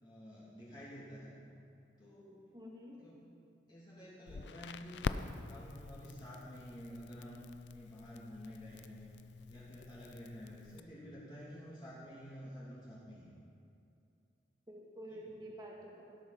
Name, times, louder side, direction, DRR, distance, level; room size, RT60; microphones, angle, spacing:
voice 1, 0.0-1.4 2.0-2.4 2.9-3.2 3.7-7.4 7.7-9.1 9.5-13.3 15.1-15.4, equal, 25° left, -9 dB, 2.8 m, -50 dB
voice 2, 2.5-3.0 14.7-16.0, equal, 20° right, -2 dB, 1.6 m, -49 dB
Crackle, 4.3-10.8, left 4 dB, 80° left, 0.5 m, -45 dB
17.0 x 8.1 x 5.9 m, 2.6 s
head